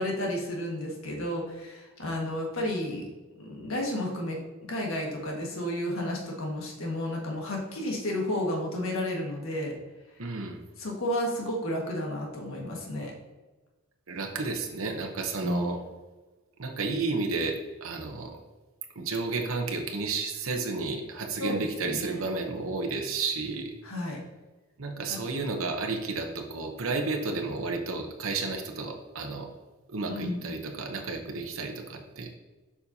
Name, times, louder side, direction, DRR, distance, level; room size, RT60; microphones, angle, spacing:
voice 1, 0.0-3.0 3.4-4.4 4.7-9.7 10.8-13.1 15.4-15.7 21.4-22.2 23.8-24.2 25.1-25.2 30.0-30.4, left 1 dB, 70° left, -1 dB, 1.6 m, -32 dB
voice 2, 10.2-10.6 14.1-15.8 16.6-18.4 18.9-23.7 24.8-29.5 29.9-32.3, right 3 dB, 70° right, 2 dB, 0.8 m, -32 dB
7.0 x 5.6 x 2.7 m, 1.2 s
head